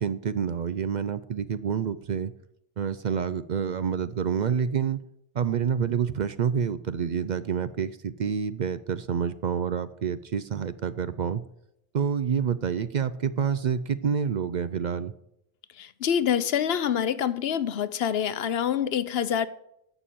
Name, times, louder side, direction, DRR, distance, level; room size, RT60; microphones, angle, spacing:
voice 1, 0.0-2.3 2.8-5.0 5.4-11.4 11.9-15.1, right 7 dB, 55° right, 0.6 m, -28 dB
voice 2, 15.8-19.5, left 9 dB, 75° left, 0.9 m, -26 dB
11.0 x 7.0 x 7.5 m
omnidirectional pair, 1.0 m